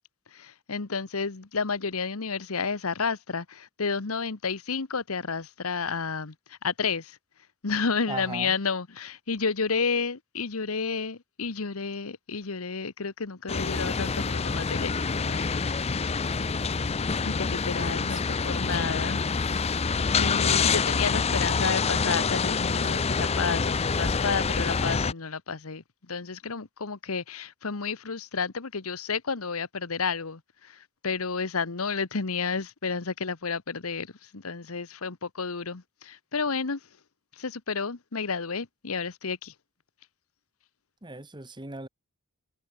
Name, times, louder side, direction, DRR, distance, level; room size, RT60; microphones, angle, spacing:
voice 1, 0.3-7.2 7.6-15.6 17.2-19.2 20.2-36.8 37.4-39.5, left 5 dB, 85° left, 1.2 m, -31 dB
voice 2, 8.1-8.5 18.1-18.7 41.0-41.9, right 2 dB, 20° right, 2.0 m, -38 dB
sound 1, 13.5-25.1, left 5 dB, 30° left, 0.5 m, -26 dB
head